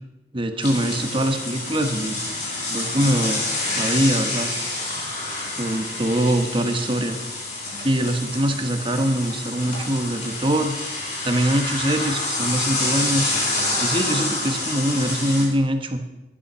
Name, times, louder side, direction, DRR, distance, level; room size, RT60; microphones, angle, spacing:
voice 1, 0.3-2.2 2.7-3.4 3.8-4.5 5.6-7.2 7.8-10.8 11.2-13.3 13.8-16.0, right 1 dB, 30° right, 6 dB, 1.3 m, -23 dB
sound 1, 0.6-15.4, left 2 dB, 45° left, 5.3 m, -28 dB
14.0 x 11.5 x 5.6 m, 0.98 s
head